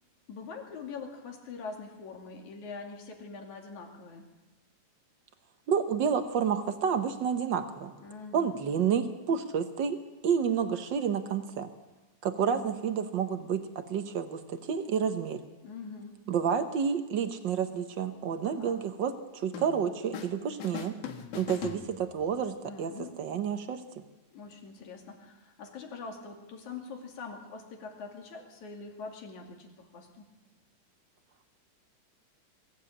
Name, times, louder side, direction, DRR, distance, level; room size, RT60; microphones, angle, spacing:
voice 1, 0.3-4.3 8.0-8.5 12.4-12.8 15.6-16.2 18.4-18.8 22.6-23.2 24.3-30.3, left 4 dB, 70° left, 2 dB, 3.9 m, -44 dB
voice 2, 5.7-7.9 8.3-11.7 12.2-15.4 16.3-20.9 21.3-22.9 23.2-23.8, right 7 dB, 85° right, 8 dB, 1.0 m, -30 dB
sound 1, 19.5-20.3 20.6-22.4, left 8 dB, 85° left, 3.0 m, -41 dB
22.5 x 15.5 x 8.7 m, 1.2 s
omnidirectional pair, 3.6 m